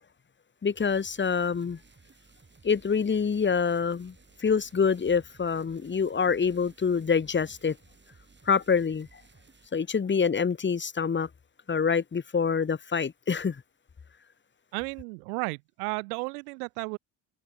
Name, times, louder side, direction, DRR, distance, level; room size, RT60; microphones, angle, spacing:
voice 1, 0.6-1.8 2.6-7.8 8.4-9.1 9.7-11.3 11.7-13.6, left 6 dB, 25° left, 1.6 m, -26 dB
sound 1, 0.7-9.7, right 4 dB, 25° right, 6.3 m, -58 dB
voice 2, 14.7-17.0, right 30 dB, 90° right, 0.8 m, -33 dB
supercardioid pair, 80°, 44 cm